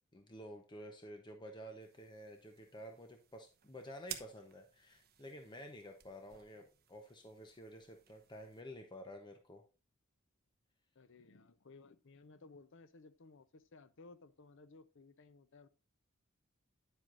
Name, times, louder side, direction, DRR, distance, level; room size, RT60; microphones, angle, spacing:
voice 1, 0.1-9.6, equal, 20° left, 0.8 m, -51 dB
sound 1, 1.8-8.6, right 10 dB, 45° right, 1.0 m, -55 dB
voice 2, 10.9-15.7, left 3 dB, 60° left, 0.7 m, -59 dB
10.5 x 7.7 x 2.6 m
head